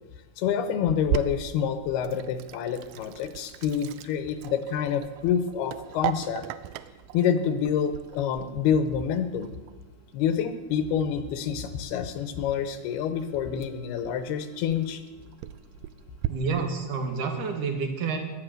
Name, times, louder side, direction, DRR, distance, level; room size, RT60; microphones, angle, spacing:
voice 1, 0.4-6.4 7.1-9.5 10.1-15.0, left 8 dB, 80° left, 10 dB, 3.1 m, -27 dB
Sink (filling or washing), 0.9-16.3, right 12 dB, 85° right, 1.9 m, -38 dB
voice 2, 16.3-18.2, right 5 dB, 55° right, 5 dB, 3.3 m, -29 dB
17.5 x 12.0 x 6.7 m, 1.2 s
omnidirectional pair, 4.7 m